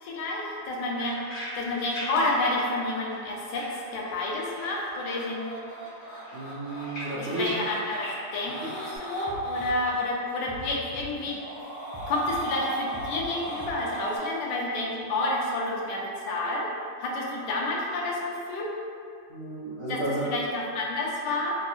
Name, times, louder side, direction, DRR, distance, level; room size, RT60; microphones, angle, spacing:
voice 1, 0.0-1.2 1.6-3.7 3.9-5.5 7.2-8.1 8.3-11.4 12.1-16.7 17.0-18.7 19.9-20.0 20.3-21.5, left 2 dB, 80° left, -2 dB, 1.2 m, -29 dB
sound 1, 0.5-4.3 4.6-5.4 5.7-9.0, equal, 65° left, 1.6 m, -40 dB
sound 2, 3.9-9.7 11.2-14.2, right 1 dB, 45° left, 1.1 m, -39 dB
voice 2, 6.3-7.5 8.6-8.7 19.3-20.3, right 1 dB, 80° right, -9 dB, 0.6 m, -32 dB
sound 3, 9.3-11.6 11.9-14.3, equal, 35° right, 1.0 m, -43 dB
3.6 x 2.7 x 2.3 m, 2.4 s
omnidirectional pair, 1.9 m